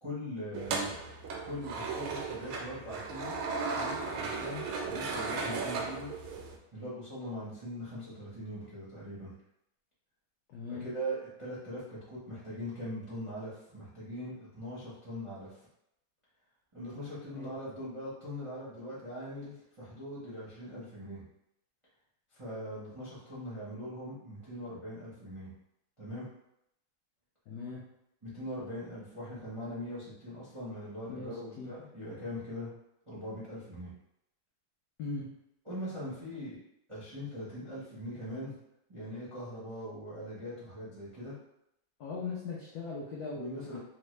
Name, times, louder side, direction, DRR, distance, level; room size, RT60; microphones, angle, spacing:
voice 1, 0.0-0.9 1.4-3.4 3.6-6.1 6.7-9.3 10.7-15.6 16.7-21.2 22.3-25.5 26.0-26.3 28.2-32.7 33.1-33.9 35.7-36.6 36.9-38.5 38.9-41.3 43.3-43.8, equal, 45° right, -10 dB, 0.4 m, -41 dB
sound 1, 0.5-6.6, right 4 dB, 85° right, 1.4 m, -36 dB
voice 2, 10.5-10.8 17.3-17.5 27.5-27.8 31.1-31.7 35.0-35.3 42.0-43.8, left 4 dB, 85° left, -3 dB, 0.8 m, -39 dB
3.6 x 2.0 x 3.1 m, 0.81 s
omnidirectional pair, 2.3 m